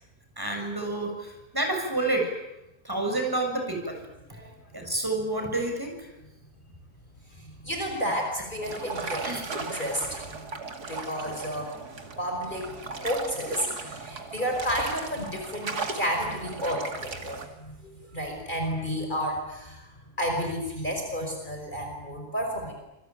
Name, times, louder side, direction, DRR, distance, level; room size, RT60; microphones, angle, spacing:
voice 1, 0.4-2.3 2.8-4.0 4.7-6.1 9.2-9.4, right 2 dB, 15° right, 3 dB, 7.3 m, -29 dB
voice 2, 7.4-10.4 10.9-11.7 12.2-12.7 13.0-19.9 20.2-22.7, equal, 30° left, 2 dB, 5.6 m, -31 dB
sound 1, 8.6-17.5, right 4 dB, 80° right, 3.0 m, -37 dB
27.5 x 23.0 x 9.3 m, 0.93 s
omnidirectional pair, 1.7 m